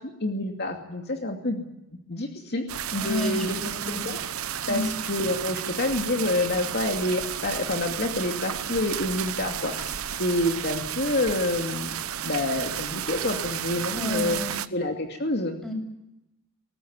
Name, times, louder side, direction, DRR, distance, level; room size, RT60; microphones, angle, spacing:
voice 1, 0.0-1.7 2.1-2.6 2.9-3.6 3.9-4.2 4.7-14.4 14.7-15.6, left 1 dB, 50° left, 3 dB, 2.5 m, -28 dB
sound 1, 2.7-14.7, right 9 dB, 85° right, 1.0 m, -32 dB
voice 2, 3.0-4.0 4.7-4.9 13.9-14.6 15.6-15.7, left 1 dB, 5° left, 3 dB, 7.4 m, -30 dB
22.5 x 19.5 x 9.7 m, 0.89 s
head